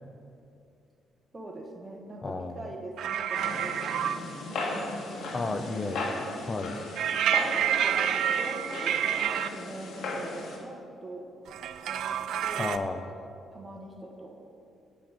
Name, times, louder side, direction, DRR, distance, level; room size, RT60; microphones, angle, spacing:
voice 1, 1.3-4.1 4.7-6.2 7.6-11.3 11.8-12.7 13.5-14.4, right 2 dB, 25° right, 1 dB, 1.5 m, -43 dB
voice 2, 2.2-2.7 5.3-6.8 12.6-13.3, left 3 dB, 30° left, 8 dB, 0.4 m, -33 dB
sound 1, 3.0-4.2 7.0-9.5 11.5-12.8, right 9 dB, 75° right, 0.4 m, -28 dB
sound 2, 3.3-10.6, left 2 dB, 65° left, 1.7 m, -36 dB
8.7 x 6.0 x 6.4 m, 2.5 s
cardioid pair, 90°, 0 cm